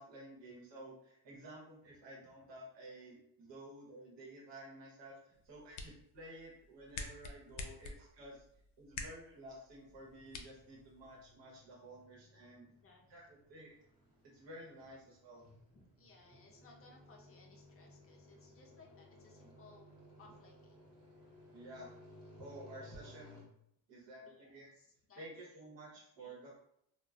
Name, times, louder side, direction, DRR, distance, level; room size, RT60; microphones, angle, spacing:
voice 1, 0.0-8.4 8.8-12.7 13.1-13.2 13.5-13.7 14.2-15.5 21.5-21.9 22.4-23.5 23.9-24.7 25.2-26.6, right 1 dB, 65° right, -3 dB, 0.9 m, -52 dB
sound 1, 5.3-11.3, left 4 dB, 85° left, 0.6 m, -50 dB
sound 2, 9.9-23.4, left 1 dB, 10° right, 0.8 m, -60 dB
voice 2, 12.6-13.0 15.7-19.9 20.2-20.9 24.2-25.6 26.2-26.6, left 3 dB, 30° left, 0 dB, 0.5 m, -63 dB
2.1 x 2.1 x 3.6 m, 0.72 s
cardioid pair, 150°, 46 cm